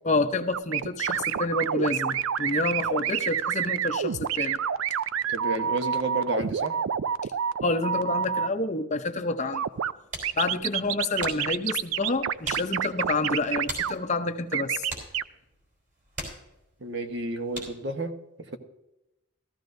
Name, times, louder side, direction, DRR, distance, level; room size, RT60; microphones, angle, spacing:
voice 1, 0.0-4.6 7.6-9.6 10.3-14.9, left 2 dB, 35° left, 8 dB, 0.6 m, -28 dB
sound 1, 0.5-8.5 9.5-9.9 10.2-13.9 14.5-15.2, right 8 dB, 75° right, 0.4 m, -28 dB
voice 2, 5.3-6.8 16.8-18.6, right 2 dB, 55° right, 6 dB, 1.0 m, -31 dB
sound 2, 9.7-18.0, right 1 dB, 40° right, 3.4 m, -43 dB
14.5 x 14.5 x 2.6 m, 0.91 s
head